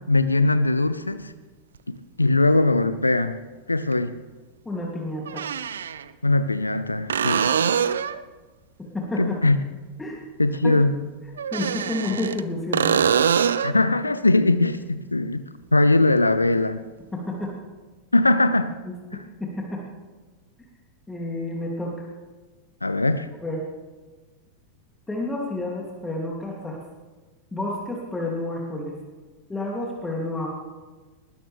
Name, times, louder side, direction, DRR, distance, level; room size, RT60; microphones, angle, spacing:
voice 1, 0.1-1.3 1.9-3.4 3.7-4.2 6.2-7.5 9.2-9.6 10.4-11.0 13.6-15.4 15.7-16.8 18.1-18.7 22.8-23.3, left 2 dB, 80° left, 13 dB, 0.7 m, -20 dB
sound 1, 1.8-1.9 3.9-4.0 5.3-6.0 7.1-8.2 11.4-12.4 12.7-13.8 17.4-17.5, right 7 dB, 65° right, 0.6 m, -23 dB
voice 2, 4.6-5.5 8.8-9.4 10.0-10.2 10.6-10.8 11.5-13.0 17.1-17.5 18.9-19.8 21.1-22.1 23.4-23.6 25.1-26.8 27.5-28.9 29.5-30.5, left 2 dB, 10° left, -3 dB, 2.9 m, -30 dB
20.5 x 19.5 x 3.5 m, 1.3 s
figure-of-eight pair, 90°, 0 cm